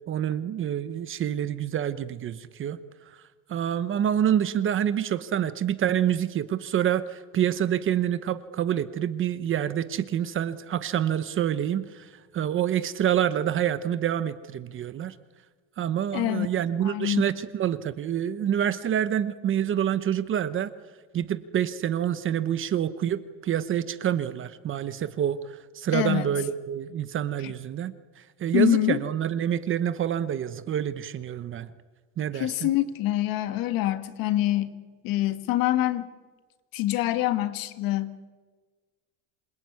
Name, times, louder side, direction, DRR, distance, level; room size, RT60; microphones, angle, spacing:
voice 1, 0.1-2.8 3.5-15.1 15.8-20.7 21.1-31.7 32.2-32.7, right 10 dB, 30° right, 13 dB, 0.9 m, -27 dB
voice 2, 16.1-16.5 16.8-17.2 25.9-26.3 27.4-27.5 28.5-29.0 32.3-34.7 35.0-36.1 36.7-38.3, left 14 dB, 50° left, 11 dB, 1.9 m, -25 dB
27.0 x 22.0 x 9.6 m, 1.4 s
cardioid pair, 160°, 43 cm